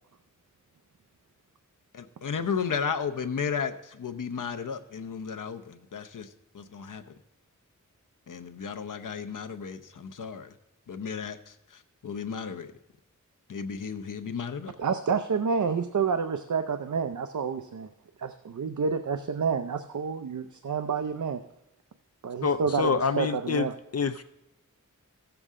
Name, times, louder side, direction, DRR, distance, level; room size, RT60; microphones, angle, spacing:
voice 1, 1.9-6.3 6.5-7.0 8.3-10.5 10.9-11.5 12.0-12.7 13.5-14.7, left 6 dB, 80° left, 7 dB, 0.8 m, -34 dB
voice 2, 14.8-17.9 18.2-21.4 22.2-22.9 23.2-23.7, right 5 dB, 70° right, 8 dB, 0.6 m, -29 dB
voice 3, 22.4-23.7 23.9-24.2, left 5 dB, 55° left, 11 dB, 0.5 m, -26 dB
16.0 x 7.0 x 3.7 m, 0.92 s
wide cardioid pair, 80°, 31 cm